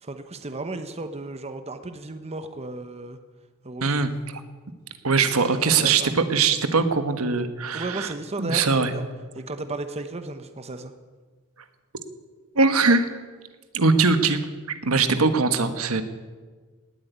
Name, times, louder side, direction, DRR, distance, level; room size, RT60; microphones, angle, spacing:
voice 1, 0.0-3.2 3.6-4.0 5.4-6.3 7.7-9.0 9.3-10.9, right 2 dB, 30° right, 9 dB, 0.9 m, -34 dB
voice 2, 3.8-4.4 5.0-8.1 8.4-8.9 12.5-13.1 13.7-14.4 14.8-16.0, right 4 dB, 85° right, 9 dB, 1.4 m, -21 dB
18.5 x 8.3 x 9.3 m, 1.4 s
head